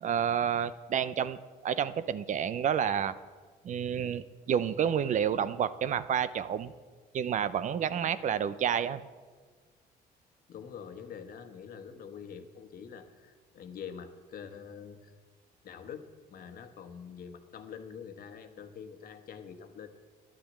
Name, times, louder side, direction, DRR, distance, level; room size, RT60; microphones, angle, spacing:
voice 1, 0.0-3.1 3.6-6.7 7.1-9.0, right 8 dB, 45° right, 15 dB, 0.6 m, -29 dB
voice 2, 10.5-15.1 15.6-19.9, left 7 dB, 60° left, 7 dB, 1.3 m, -45 dB
10.0 x 10.0 x 7.4 m, 1.5 s
cardioid pair, 110°, 17 cm